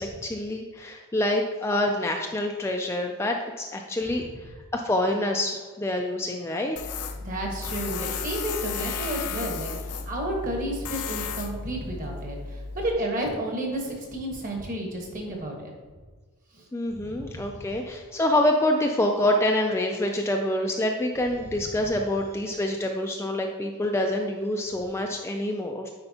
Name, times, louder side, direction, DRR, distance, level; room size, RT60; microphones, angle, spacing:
voice 1, 0.0-4.2 4.7-6.9 16.7-25.9, left 1 dB, 10° left, 2 dB, 0.3 m, -26 dB
Tools, 6.8-12.9, left 5 dB, 85° left, 0.5 m, -34 dB
voice 2, 7.2-15.7 16.5-16.6 17.0-17.6, right 1 dB, 35° right, 0 dB, 1.3 m, -32 dB
9.6 x 4.4 x 2.8 m, 1.4 s
head